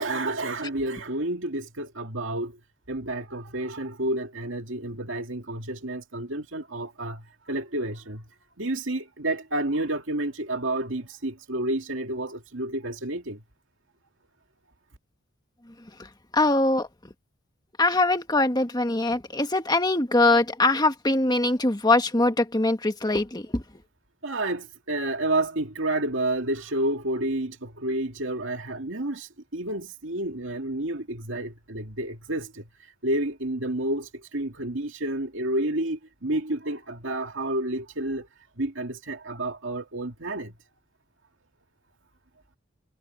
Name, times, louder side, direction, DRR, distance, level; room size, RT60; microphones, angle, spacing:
voice 1, 0.0-2.5 2.9-7.2 7.5-8.2 8.6-13.4 24.2-29.3 29.5-32.5 33.0-34.1 34.3-38.2 38.6-40.5, right 1 dB, 70° right, 2.4 m, -30 dB
voice 2, 16.3-16.9 17.8-23.6, left 2 dB, 20° left, 1.7 m, -22 dB
head